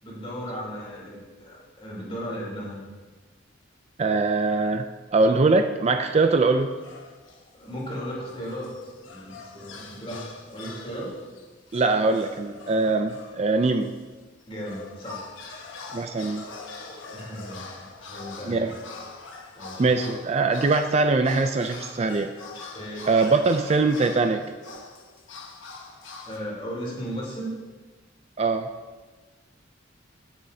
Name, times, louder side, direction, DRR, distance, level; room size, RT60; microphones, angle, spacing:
voice 1, 0.0-2.8 7.5-11.1 14.5-15.3 17.1-18.7 19.5-19.9 22.7-23.3 26.3-27.5, equal, 30° left, -6 dB, 3.4 m, -36 dB
voice 2, 4.0-4.9 5.1-6.7 11.7-13.9 15.9-16.4 18.5-18.7 19.8-22.3 23.1-24.4 28.4-28.7, right 3 dB, 35° right, 7 dB, 0.4 m, -22 dB
sound 1, 6.6-7.5 7.9-14.0 14.4-26.4, left 4 dB, 80° left, 1.2 m, -43 dB
16.0 x 7.3 x 2.8 m, 1.3 s
head